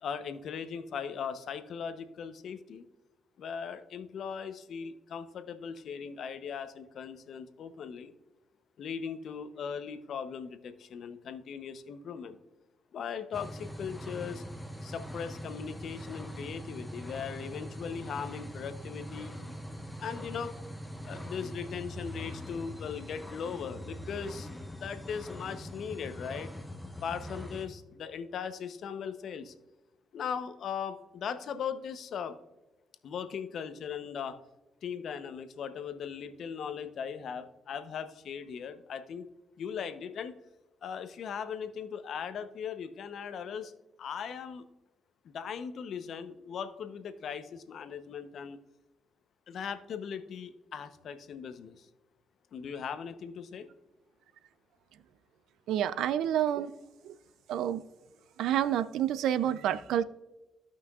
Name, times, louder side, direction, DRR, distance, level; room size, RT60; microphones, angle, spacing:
voice 1, 0.0-2.8 3.4-8.1 8.8-12.4 12.9-14.4 14.8-19.4 20.0-20.5 21.0-24.5 24.8-26.5 27.0-29.5 30.1-32.4 33.0-34.4 34.8-39.2 39.6-40.3 40.8-43.7 44.0-44.6 45.2-48.6 49.5-51.8 52.5-53.7, left 7 dB, 70° left, 0.7 m, -39 dB
sound 1, 13.3-27.7, equal, 10° left, 1.1 m, -42 dB
voice 2, 55.7-56.7 57.0-57.1 57.5-57.8 58.4-60.0, right 10 dB, 85° right, 0.4 m, -28 dB
15.5 x 5.8 x 2.4 m
cardioid pair, 70°, 0 cm